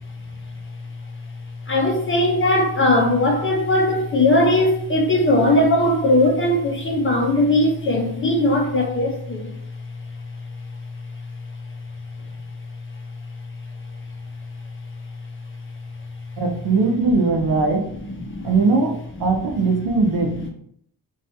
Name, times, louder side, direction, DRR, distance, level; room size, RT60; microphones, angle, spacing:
voice 1, 1.7-9.6 17.4-17.5 18.2-18.5, left 1 dB, 35° left, 0.4 m, -19 dB
voice 2, 16.4-17.9 18.4-20.3, right 3 dB, 70° right, 0.6 m, -20 dB
2.7 x 2.3 x 2.7 m
wide cardioid pair, 160°, 40 cm